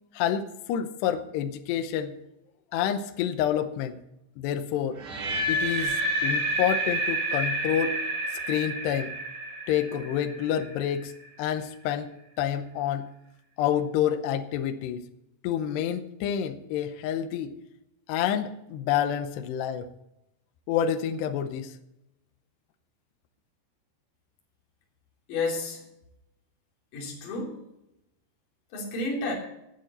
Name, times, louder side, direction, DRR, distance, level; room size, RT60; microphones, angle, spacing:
voice 1, 0.1-2.1 2.7-4.0 4.4-5.0 5.5-8.0 8.3-9.1 9.7-11.1 11.4-13.1 13.6-15.1 15.4-17.5 18.1-19.9 20.7-21.8, left 9 dB, 80° left, 8 dB, 2.7 m, -28 dB
sound 1, 5.0-11.0, right 1 dB, 60° right, 3.9 m, -29 dB
voice 2, 25.3-25.8 26.9-27.6 28.7-29.3, left 3 dB, 50° left, -2 dB, 4.4 m, -31 dB
17.0 x 8.9 x 4.3 m, 0.85 s
omnidirectional pair, 5.5 m